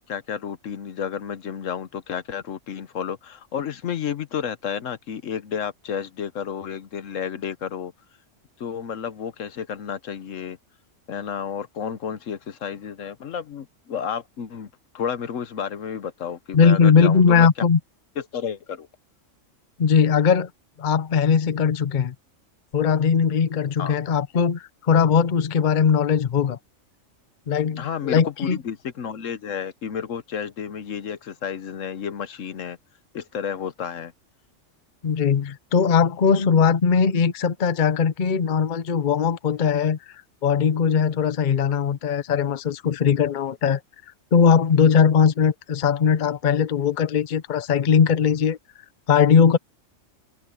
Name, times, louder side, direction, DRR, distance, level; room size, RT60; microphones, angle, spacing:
voice 1, 0.1-7.9 8.6-10.6 11.1-17.5 18.2-18.9 23.8-24.0 27.8-32.8 33.1-34.1, left 8 dB, 70° left, 1.2 m, -31 dB
voice 2, 16.5-17.8 19.8-20.5 20.8-22.1 22.7-26.6 27.5-28.6 35.0-40.0 40.4-43.8 44.3-48.6 49.1-49.6, left 6 dB, 40° left, 0.8 m, -19 dB
omnidirectional pair, 1.4 m